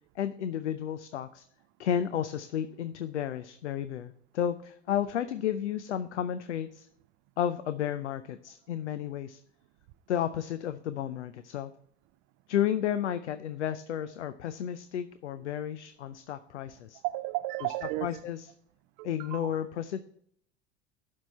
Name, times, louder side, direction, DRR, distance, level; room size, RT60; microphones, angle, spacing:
voice 1, 0.2-1.4 1.8-6.9 7.4-9.4 10.1-11.7 12.5-17.0 18.0-18.5 19.0-20.0, left 10 dB, 85° left, 0.5 m, -32 dB
voice 2, 17.0-18.2 19.0-19.6, right 17 dB, 50° right, 0.5 m, -34 dB
12.0 x 4.6 x 4.1 m
hypercardioid pair, 75°, 34 cm